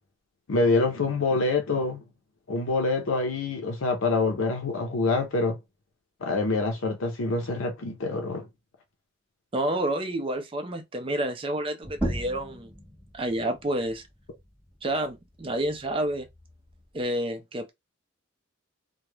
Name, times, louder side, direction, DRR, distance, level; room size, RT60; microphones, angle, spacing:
voice 1, 0.5-2.0 2.5-5.6 6.2-8.5, left 3 dB, 90° left, 0.6 m, -26 dB
voice 2, 9.5-12.7 13.1-14.0 14.8-16.3 16.9-17.7, right 1 dB, 25° right, 0.4 m, -29 dB
sound 1, 11.8-17.0, equal, 5° right, 1.1 m, -38 dB
2.3 x 2.1 x 3.0 m
head